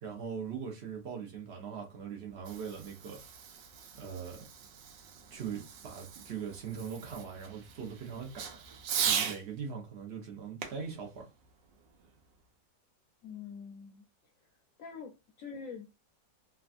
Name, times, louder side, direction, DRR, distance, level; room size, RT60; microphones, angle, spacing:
voice 1, 0.0-3.2 3.9-4.5 5.3-8.6 9.0-11.3, right 6 dB, 60° right, 0.7 m, -41 dB
Fireworks, 2.2-9.4 10.6-12.2, right 8 dB, 90° right, 1.3 m, -39 dB
voice 2, 13.2-14.0 14.8-16.0, left 6 dB, 70° left, 0.8 m, -45 dB
3.3 x 2.2 x 2.4 m
omnidirectional pair, 1.9 m